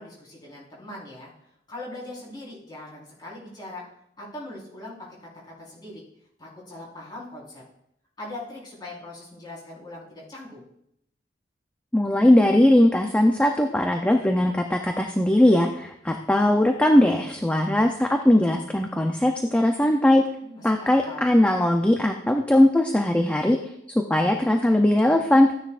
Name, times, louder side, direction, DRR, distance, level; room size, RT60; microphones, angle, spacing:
voice 1, 0.0-3.8 4.2-6.0 6.4-7.6 8.2-10.7 20.4-21.3, left 1 dB, 25° left, -6 dB, 4.4 m, -41 dB
voice 2, 11.9-20.2 20.6-23.6 23.9-25.5, left 1 dB, 5° left, 4 dB, 0.5 m, -20 dB
15.0 x 9.9 x 2.5 m, 0.76 s
head